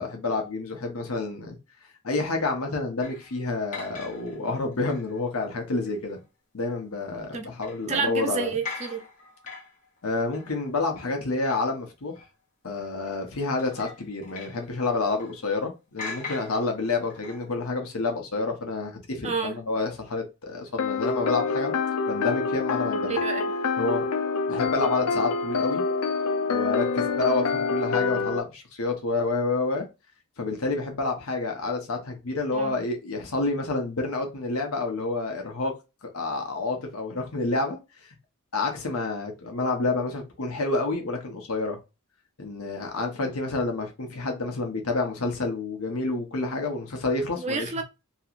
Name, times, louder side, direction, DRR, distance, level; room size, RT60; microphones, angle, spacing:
voice 1, 0.0-1.6 2.0-6.2 6.5-8.5 10.0-12.1 12.6-21.7 22.1-23.2 23.8-24.0 24.5-25.8 26.5-29.9 30.4-35.7 36.0-37.8 38.5-41.8 42.4-47.7, left 3 dB, 70° left, 1.0 m, -29 dB
sound 1, 3.0-5.2 5.8-6.2 6.6-6.8 7.6-11.9 12.2-12.3 12.7-13.2 13.6-15.7 16.0-17.5, left 4 dB, 35° left, 1.1 m, -42 dB
voice 2, 7.9-9.0 19.2-19.5 23.1-23.4 32.5-32.7 47.4-47.8, right 5 dB, 30° right, 0.6 m, -29 dB
sound 2, 20.8-28.4, left 4 dB, 90° left, 0.5 m, -26 dB
3.0 x 2.9 x 2.5 m
head